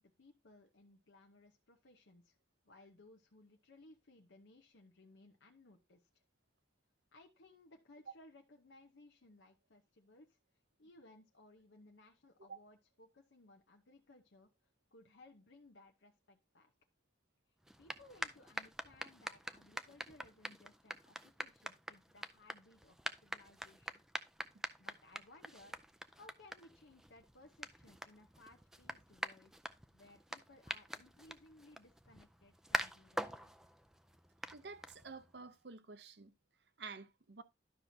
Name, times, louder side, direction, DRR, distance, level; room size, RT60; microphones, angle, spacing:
voice 1, 0.0-2.4 2.6-6.1 7.1-10.4 10.8-14.5 14.9-16.7 17.8-24.0 24.8-29.6 29.9-33.7, left 2 dB, 90° left, 0.9 m, -62 dB
sound 1, 17.6-35.4, right 1 dB, 5° right, 0.3 m, -46 dB
voice 2, 34.5-36.3 36.8-37.4, right 4 dB, 70° right, 0.7 m, -50 dB
11.5 x 5.9 x 2.7 m
head